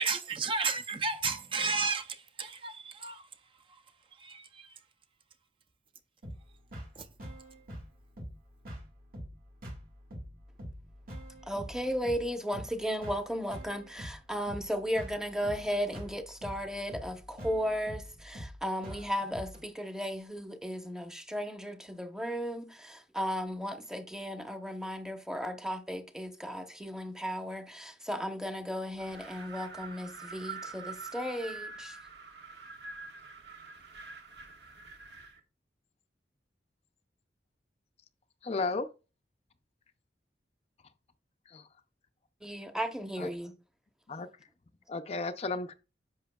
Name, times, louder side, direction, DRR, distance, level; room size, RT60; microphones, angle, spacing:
voice 1, 0.0-3.2 4.2-4.5 7.0-7.1, right 4 dB, 30° right, 0.5 m, -32 dB
sound 1, 6.2-19.6, equal, 55° right, 2.1 m, -45 dB
voice 2, 11.5-32.0 42.4-43.5, equal, 5° right, 0.8 m, -35 dB
Wind, 29.0-35.4, right 4 dB, 70° right, 1.4 m, -45 dB
voice 3, 38.4-38.9 41.5-41.6 44.1-44.3 44.9-45.7, left 3 dB, 35° left, 0.4 m, -33 dB
10.0 x 6.6 x 2.3 m
head